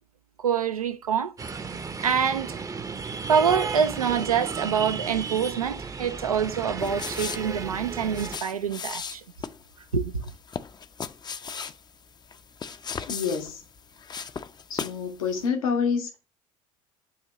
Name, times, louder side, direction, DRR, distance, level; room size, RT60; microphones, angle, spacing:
voice 1, 0.4-1.3 2.0-2.6 3.3-9.2 9.9-10.2, right 7 dB, 90° right, 0.4 m, -26 dB
sound 1, 1.4-8.4, right 5 dB, 20° right, 0.6 m, -34 dB
sound 2, 6.8-15.1 15.4-15.5, left 6 dB, 25° left, 0.5 m, -37 dB
voice 2, 13.1-13.6 14.7-16.2, left 6 dB, 75° left, 1.0 m, -27 dB
8.4 x 2.9 x 4.8 m
figure-of-eight pair, 65°, 18 cm